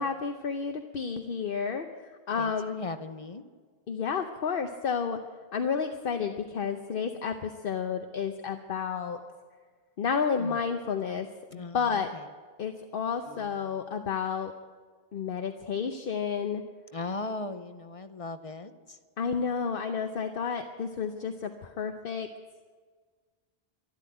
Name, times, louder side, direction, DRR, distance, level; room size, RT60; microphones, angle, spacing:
voice 1, 0.0-2.8 3.9-5.2 5.5-9.2 10.0-12.1 12.6-14.5 15.1-16.6 19.2-22.3, left 6 dB, 65° left, 6 dB, 1.0 m, -31 dB
voice 2, 2.4-3.4 10.4-10.6 11.5-12.3 16.9-19.0, left 3 dB, 35° left, 10 dB, 0.8 m, -38 dB
Piano, 13.2-14.2, right 1 dB, 80° right, 3.0 m, -56 dB
12.5 x 12.5 x 9.1 m, 1.5 s
omnidirectional pair, 1.0 m